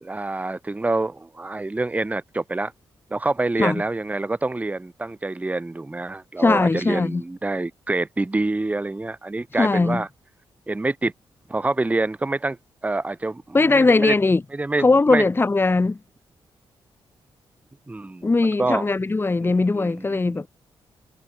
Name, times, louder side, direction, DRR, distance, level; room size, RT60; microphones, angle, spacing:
voice 1, 0.0-2.7 3.1-10.1 10.7-11.1 11.5-12.6 12.8-14.1 14.5-15.3 17.9-18.3 18.6-18.9 19.4-20.5, right 2 dB, 15° right, 0.9 m, -26 dB
voice 2, 6.4-7.2 9.6-10.0 13.5-14.4 14.8-16.0 18.2-20.5, left 3 dB, 25° left, 1.2 m, -19 dB
cardioid pair, 80°, 9 cm